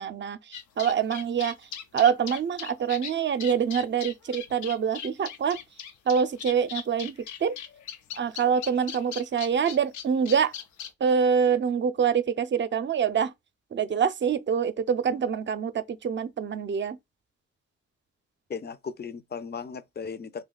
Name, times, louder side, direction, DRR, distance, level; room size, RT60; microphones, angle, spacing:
voice 1, 0.0-5.6 6.1-7.2 7.4-7.6 8.2-10.5 11.0-13.3 13.7-17.0, right 7 dB, 40° right, 0.5 m, -25 dB
sound 1, 0.5-10.9, left 9 dB, 85° left, 0.7 m, -39 dB
voice 2, 18.5-20.4, left 6 dB, 35° left, 0.6 m, -36 dB
2.7 x 2.2 x 3.9 m
supercardioid pair, 55°, 29 cm